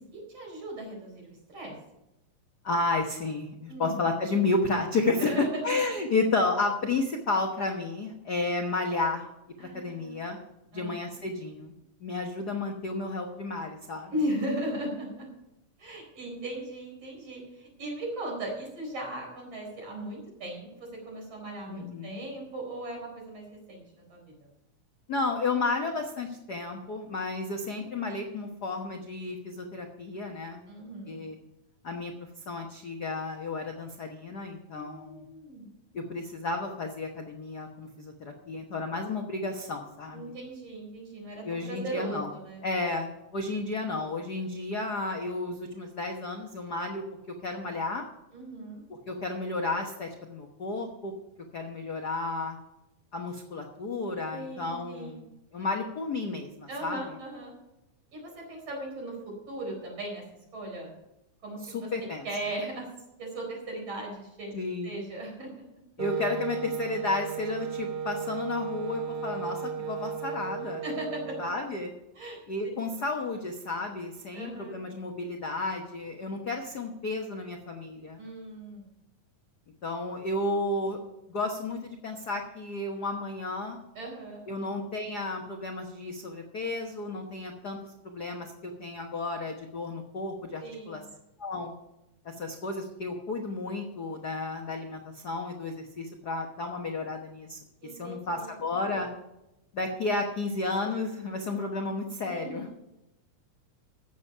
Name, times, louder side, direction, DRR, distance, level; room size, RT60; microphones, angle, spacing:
voice 1, 0.1-1.8 3.7-4.0 5.2-5.5 9.6-10.2 10.7-11.2 14.1-15.3 15.8-24.3 30.7-31.2 34.7-35.7 40.1-42.6 48.3-48.8 54.3-55.2 56.7-57.5 58.1-60.2 60.5-60.9 61.4-61.9 62.2-62.9 63.2-64.5 64.8-65.5 70.8-71.4 72.2-72.4 74.3-74.8 78.2-78.9 84.0-84.4 90.6-91.1 97.8-98.6 102.2-102.7, right 1 dB, 50° right, -1 dB, 5.3 m, -37 dB
voice 2, 2.6-5.4 5.6-9.2 9.6-10.4 10.7-11.7 12.0-14.1 21.7-22.2 25.1-30.6 31.1-31.4 31.8-32.1 32.5-35.3 35.9-40.4 41.4-42.3 42.6-47.0 47.4-48.0 49.1-51.1 51.5-52.6 53.1-55.2 55.5-57.0 61.6-62.2 64.5-64.9 66.0-70.8 71.4-71.9 72.5-78.2 79.8-81.0 81.3-83.8 84.5-87.8 88.0-91.0 91.4-91.7 92.2-97.6 98.0-99.1 99.7-102.7, left 3 dB, 75° left, 3 dB, 0.9 m, -32 dB
Wind instrument woodwind instrument, 66.0-71.7, right 6 dB, 75° right, 1.3 m, -35 dB
14.5 x 8.3 x 5.6 m, 0.90 s
omnidirectional pair, 3.7 m